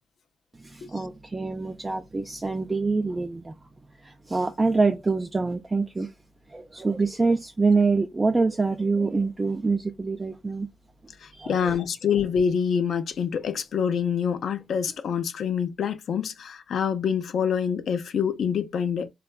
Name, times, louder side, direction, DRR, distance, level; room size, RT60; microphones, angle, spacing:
voice 1, 0.6-3.5 4.0-6.1 6.5-10.7 11.3-11.8, right 3 dB, 25° right, 0.3 m, -25 dB
voice 2, 11.2-19.1, left 7 dB, 70° left, 0.3 m, -26 dB
3.5 x 2.2 x 2.2 m
cardioid pair, 75°, 0 cm